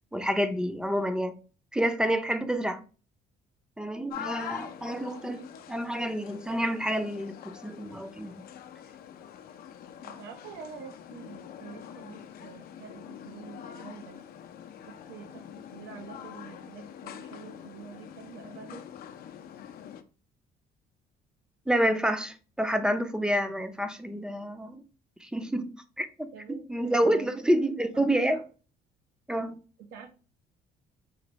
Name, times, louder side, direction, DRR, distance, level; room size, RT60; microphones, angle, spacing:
voice 1, 0.1-1.3 1.7-2.8 3.8-8.3 21.7-24.8 25.2-25.7 26.0-28.4 29.3-29.6, equal, 5° right, 0.5 m, -28 dB
sound 1, 4.1-20.0, left 9 dB, 65° left, 0.5 m, -45 dB
voice 2, 10.0-14.2 14.8-18.8 26.3-27.4 27.9-28.4 29.8-30.2, right 6 dB, 90° right, 0.9 m, -46 dB
5.0 x 2.6 x 3.0 m
cardioid pair, 110°, 17 cm